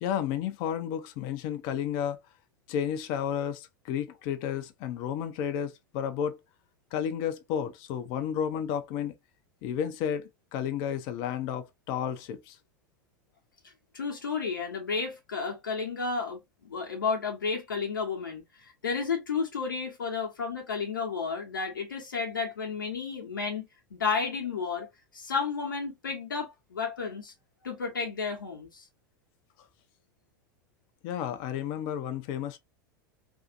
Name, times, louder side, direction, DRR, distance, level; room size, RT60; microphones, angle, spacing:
voice 1, 0.0-2.2 2.7-6.4 6.9-9.1 9.6-12.6 31.0-32.6, left 9 dB, 45° left, 0.5 m, -32 dB
voice 2, 13.9-27.3 27.6-28.9, left 5 dB, 80° left, 0.8 m, -32 dB
2.6 x 2.4 x 2.5 m
figure-of-eight pair, 85°, 11 cm